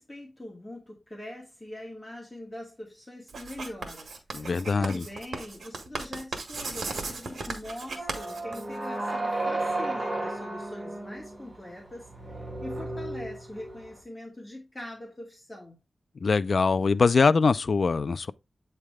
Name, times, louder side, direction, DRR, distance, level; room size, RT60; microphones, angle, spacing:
voice 1, 0.0-4.1 4.3-15.8, left 1 dB, 20° left, 2.0 m, -43 dB
Writing, 3.3-9.1, right 3 dB, 85° right, 1.4 m, -37 dB
voice 2, 4.3-5.1 16.2-18.3, left 4 dB, 65° left, 0.4 m, -23 dB
sound 1, 7.9-14.0, right 2 dB, 30° right, 2.1 m, -33 dB
8.5 x 3.3 x 3.5 m
wide cardioid pair, 75°, 0 cm